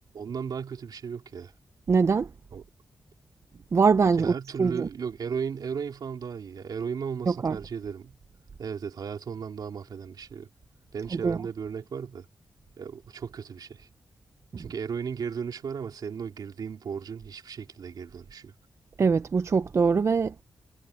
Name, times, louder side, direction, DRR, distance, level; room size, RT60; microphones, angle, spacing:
voice 1, 0.1-1.5 2.5-2.6 4.2-8.2 8.6-10.5 10.9-12.3 12.8-13.9 14.6-18.5, right 6 dB, 70° right, 2.8 m, -35 dB
voice 2, 1.9-2.3 3.7-4.9 7.3-7.6 11.1-11.4 14.5-14.7 19.0-20.4, right 5 dB, 40° right, 0.5 m, -23 dB
wide cardioid pair, 125°, 7 cm